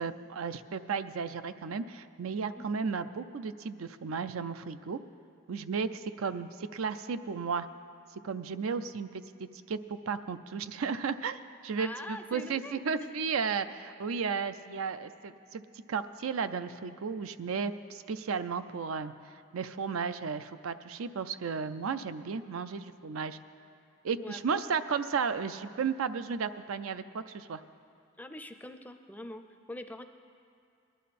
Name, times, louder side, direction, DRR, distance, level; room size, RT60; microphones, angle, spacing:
voice 1, 0.0-5.0 5.5-7.7 8.2-9.1 9.4-15.6 15.9-19.1 19.5-23.4 24.0-27.6, right 5 dB, 90° right, 12 dB, 0.5 m, -34 dB
voice 2, 11.8-13.2 24.2-24.4 24.7-24.8 28.2-29.4 29.7-30.0, left 1 dB, 10° left, 8 dB, 0.4 m, -43 dB
19.5 x 11.5 x 4.2 m, 2.4 s
head